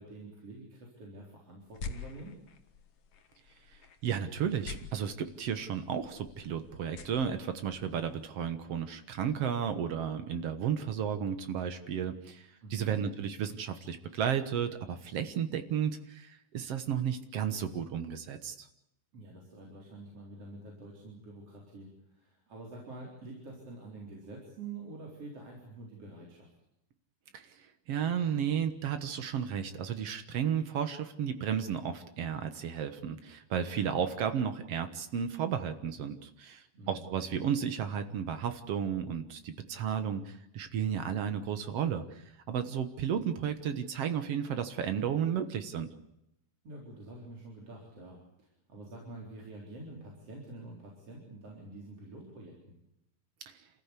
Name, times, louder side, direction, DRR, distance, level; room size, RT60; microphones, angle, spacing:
voice 1, 0.0-2.4 12.6-12.9 19.1-26.5 36.7-37.1 46.6-52.7, right 2 dB, 35° right, -2 dB, 4.8 m, -47 dB
sound 1, 1.6-8.3, left 5 dB, 55° left, 1.9 m, -48 dB
voice 2, 3.7-18.7 27.3-45.9 53.5-53.6, right 8 dB, 75° right, 9 dB, 1.4 m, -33 dB
28.0 x 15.5 x 8.3 m, 0.86 s
omnidirectional pair, 4.7 m